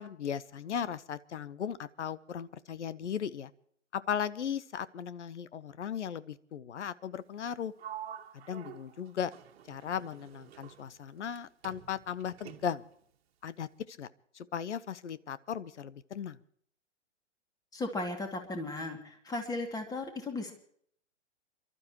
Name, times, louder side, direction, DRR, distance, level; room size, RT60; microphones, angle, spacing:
voice 1, 0.0-3.5 3.9-7.7 8.3-9.3 9.7-12.8 13.4-14.1 14.3-16.4, left 8 dB, 70° left, 17 dB, 1.0 m, -37 dB
Sliding door, 7.8-11.4 11.6-13.0, right 10 dB, 55° right, 1.6 m, -48 dB
voice 2, 17.7-20.5, left 2 dB, 10° left, 5 dB, 2.5 m, -36 dB
28.5 x 12.5 x 3.0 m, 0.63 s
figure-of-eight pair, 120°, 36 cm